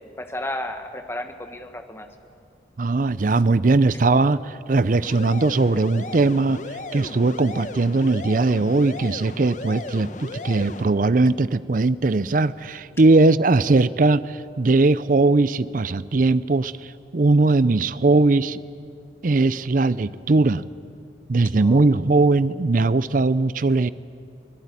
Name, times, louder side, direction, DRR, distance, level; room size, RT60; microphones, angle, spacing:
voice 1, 0.2-2.1 21.6-21.8, left 1 dB, 15° left, 6 dB, 1.4 m, -33 dB
voice 2, 2.8-6.6 6.9-18.6 19.2-20.6 21.3-23.9, right 3 dB, 45° right, 17 dB, 0.5 m, -19 dB
sound 1, 5.0-10.8, left 2 dB, 40° left, 1.1 m, -35 dB
23.5 x 18.0 x 9.8 m, 2.4 s
head